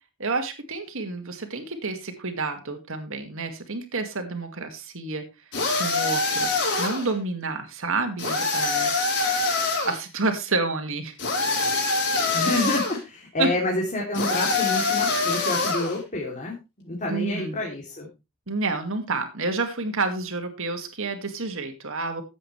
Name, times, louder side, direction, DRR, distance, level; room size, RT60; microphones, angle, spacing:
voice 1, 0.2-5.2 5.8-9.2 9.6-11.1 13.4-13.5 17.1-17.6 18.5-22.2, right 3 dB, 65° right, 6 dB, 2.2 m, -29 dB
sound 1, 5.5-7.1 8.2-10.0 11.2-13.0 14.1-16.0, left 3 dB, 55° left, 5.1 m, -24 dB
voice 2, 12.3-18.1, left 2 dB, 35° left, -3 dB, 3.1 m, -28 dB
14.0 x 8.7 x 3.3 m, 0.26 s
head